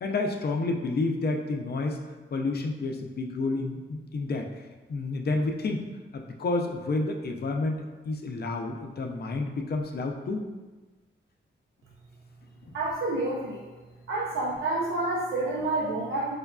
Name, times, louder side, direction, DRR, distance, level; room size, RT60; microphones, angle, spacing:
voice 1, 0.0-2.0 2.3-4.5 4.9-5.8 6.1-7.8 8.1-10.5 12.7-12.8, left 3 dB, 50° left, 3 dB, 0.5 m, -30 dB
voice 2, 12.7-13.7 14.1-16.4, right 2 dB, 80° right, -4 dB, 0.5 m, -29 dB
4.9 x 2.3 x 2.2 m, 1.3 s
cardioid pair, 70°, 21 cm